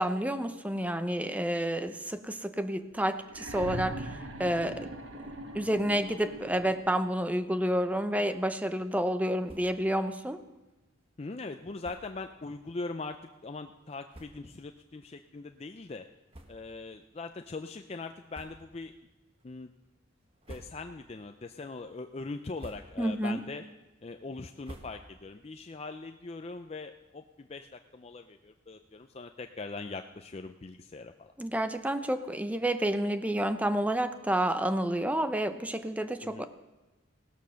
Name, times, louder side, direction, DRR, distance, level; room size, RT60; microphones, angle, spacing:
voice 1, 0.0-4.1 4.4-4.9 5.5-10.4 23.0-23.4 31.4-36.5, right 1 dB, 5° right, 10 dB, 0.7 m, -29 dB
sound 1, 3.3-7.1 8.3-8.4, right 1 dB, 80° right, 1.5 m, -41 dB
sound 2, 9.4-9.9 10.2-10.3 10.6-10.8 11.8-12.2 13.0-13.1 13.7-13.8 14.1-14.6 15.2-15.3 16.3-16.9 17.3-17.4 18.3-18.9 19.3-19.8 20.2-21.1 21.5-21.9 22.3-23.2 23.6-25.4, right 1 dB, 30° right, 1.4 m, -51 dB
voice 2, 11.2-16.1 16.5-18.9 19.4-19.7 20.5-23.6 24.0-31.3 36.2-36.5, left 3 dB, 30° left, 7 dB, 0.5 m, -41 dB
16.5 x 12.5 x 6.3 m, 1.1 s
head